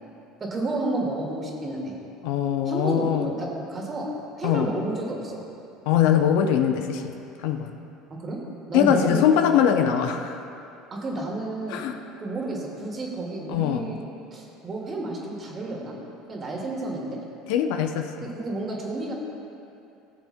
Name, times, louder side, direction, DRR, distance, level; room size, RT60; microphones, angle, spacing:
voice 1, 0.4-2.0 2.7-4.1 4.4-5.4 8.1-8.4 8.7-9.2 10.9-11.9 12.2-14.0 14.3-16.0 16.3-17.2 18.2-19.1, right 2 dB, 30° right, -2 dB, 1.9 m, -31 dB
voice 2, 2.2-3.3 4.4-4.7 5.9-7.1 7.4-7.7 8.7-10.4 11.7-12.0 13.5-13.9 17.5-18.3, left 9 dB, 70° left, 6 dB, 0.6 m, -22 dB
17.0 x 6.8 x 2.2 m, 2.8 s
hypercardioid pair, 75°, 0 cm